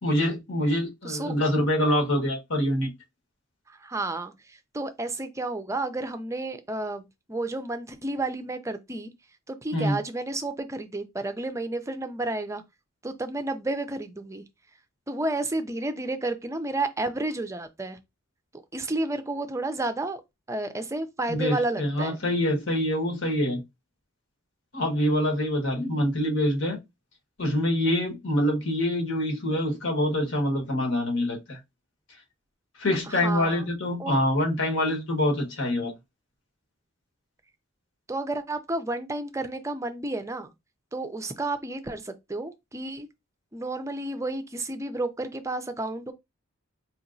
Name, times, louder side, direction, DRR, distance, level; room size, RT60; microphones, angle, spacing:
voice 1, 0.0-2.9 9.7-10.0 21.3-23.6 24.7-26.8 27.4-31.6 32.8-35.9, left 1 dB, 70° left, 1.3 m, -25 dB
voice 2, 1.0-1.4 3.7-9.1 9.5-12.6 13.0-14.4 15.1-18.0 18.7-20.2 20.5-22.2 33.1-33.7 34.0-34.2 38.1-40.5 40.9-43.1 43.5-46.1, right 2 dB, 15° right, 0.4 m, -31 dB
4.4 x 3.0 x 2.6 m
head